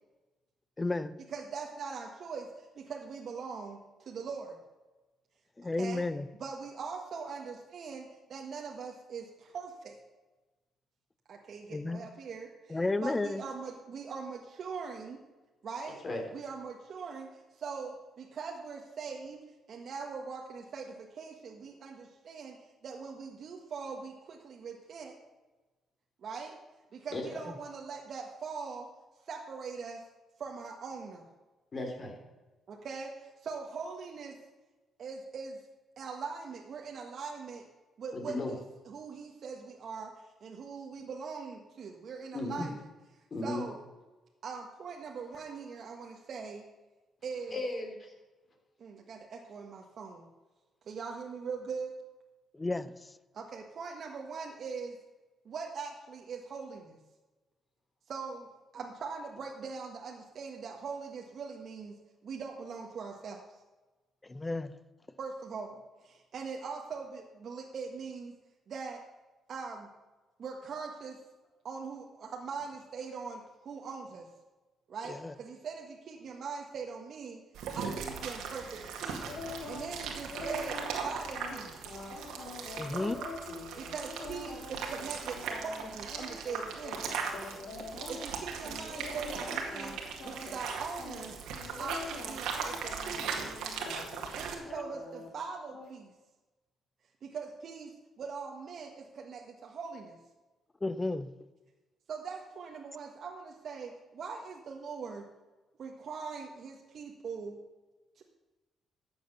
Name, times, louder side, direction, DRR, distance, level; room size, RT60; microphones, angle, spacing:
voice 1, 0.8-1.1 5.6-6.3 11.7-12.1 12.7-13.4 42.6-42.7 52.5-52.9 64.2-64.7 75.1-75.3 82.8-83.2 100.8-101.3, left 2 dB, 20° left, 15 dB, 0.7 m, -32 dB
voice 2, 1.3-4.6 5.6-6.0 6.4-10.0 11.3-15.2 15.6-16.0 16.3-19.4 19.7-25.2 26.2-26.6 26.9-28.9 29.2-30.0 30.4-31.3 32.7-34.4 35.0-35.6 36.0-37.6 38.0-38.6 38.8-42.8 43.4-43.8 44.4-46.6 47.2-47.6 48.8-50.3 50.9-51.9 53.3-55.0 55.4-57.0 58.1-61.9 62.2-63.6 65.2-68.3 68.7-69.0 69.5-69.9 70.4-71.2 71.6-74.3 74.9-77.4 77.7-81.8 83.8-87.0 87.9-91.4 91.8-93.4 94.1-96.1 97.2-100.2 102.1-105.2 105.8-107.6 108.2-108.3, right 5 dB, 55° right, 0 dB, 1.4 m, -41 dB
voice 3, 31.7-32.2 38.1-38.5 42.3-42.7 43.3-43.6 47.5-48.1, left 2 dB, 40° left, 2 dB, 3.5 m, -35 dB
sound 1, 77.5-94.5, right 6 dB, 85° right, 2.0 m, -39 dB
sound 2, 79.2-79.9 80.3-88.2 88.6-89.9 90.2-90.7 91.0-94.3 94.6-95.3 95.7-95.9, left 4 dB, 65° left, 2.8 m, -44 dB
13.0 x 7.8 x 6.8 m, 1.2 s
cardioid pair, 90°, 0 cm